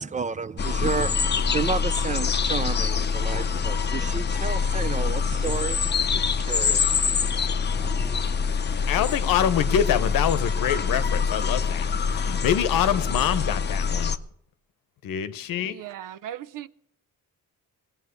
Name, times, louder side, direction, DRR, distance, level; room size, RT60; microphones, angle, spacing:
voice 1, 0.0-8.7, right 5 dB, 25° right, 0.5 m, -32 dB
sound 1, 0.6-14.2, left 6 dB, 30° left, 0.7 m, -25 dB
voice 2, 8.9-14.1 15.0-15.8, left 9 dB, 90° left, 1.0 m, -25 dB
voice 3, 15.6-16.7, right 11 dB, 75° right, 0.7 m, -38 dB
19.5 x 7.3 x 8.2 m
cardioid pair, 105°, 33 cm